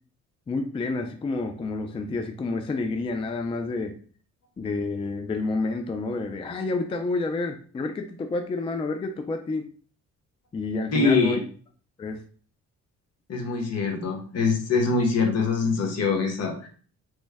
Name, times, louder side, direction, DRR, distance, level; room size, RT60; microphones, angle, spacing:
voice 1, 0.5-4.0 4.6-9.7 10.5-11.4 12.0-12.2, left 3 dB, 20° left, 5 dB, 0.3 m, -29 dB
voice 2, 10.9-11.4 13.3-16.7, left 4 dB, 55° left, 3 dB, 0.9 m, -24 dB
3.1 x 2.1 x 3.3 m, 0.43 s
cardioid pair, 90°, 30 cm